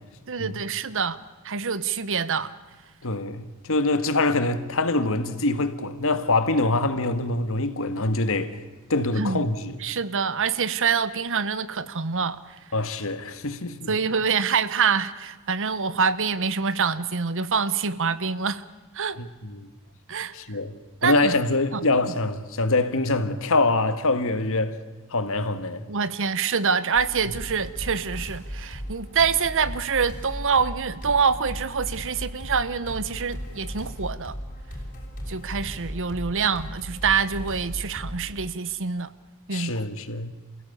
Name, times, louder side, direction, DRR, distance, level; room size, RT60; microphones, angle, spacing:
voice 1, 0.3-2.5 9.2-9.5 9.8-12.4 13.9-18.6 18.9-19.2 20.1-20.3 21.0-21.3 21.7-21.8 25.9-34.3 35.3-39.1 39.5-39.8, right 6 dB, 60° right, 1.1 m, -25 dB
voice 2, 3.0-8.6 8.9-9.8 12.7-13.9 19.2-19.7 20.3-20.7 21.0-24.8 25.1-25.8 39.5-40.3, left 2 dB, 65° left, 1.7 m, -24 dB
sound 1, 26.9-38.3, equal, 40° left, 6.7 m, -36 dB
28.0 x 16.5 x 8.5 m
head